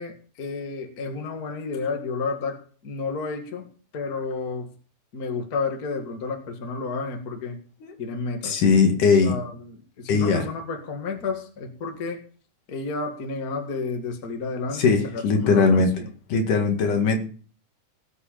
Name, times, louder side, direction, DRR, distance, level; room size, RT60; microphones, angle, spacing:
voice 1, 0.0-3.7 3.9-4.7 5.1-7.6 8.0-8.6 9.2-12.2 12.7-16.1, left 4 dB, 35° left, 4 dB, 1.9 m, -31 dB
voice 2, 8.4-9.3 10.1-10.5 14.7-15.9 16.3-17.2, left 4 dB, 70° left, 4 dB, 3.5 m, -20 dB
18.5 x 8.2 x 5.1 m, 0.42 s
omnidirectional pair, 3.9 m